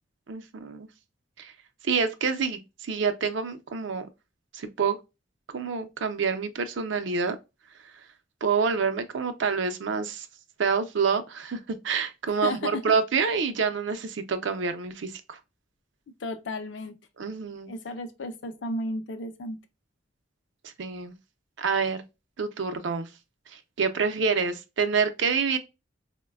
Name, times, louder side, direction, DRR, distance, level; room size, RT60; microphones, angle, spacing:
voice 1, 0.3-0.9 1.4-1.5 1.8-4.1 4.5-5.0 5.5-7.4 8.4-10.3 10.6-15.4 17.2-17.7 20.8-21.1 21.6-22.0 22.4-23.1 23.5-25.6, right 5 dB, 70° right, 0.5 m, -27 dB
voice 2, 12.3-12.9 16.2-17.0 17.7-19.6, left 2 dB, 70° left, 0.5 m, -33 dB
4.0 x 2.1 x 2.2 m
head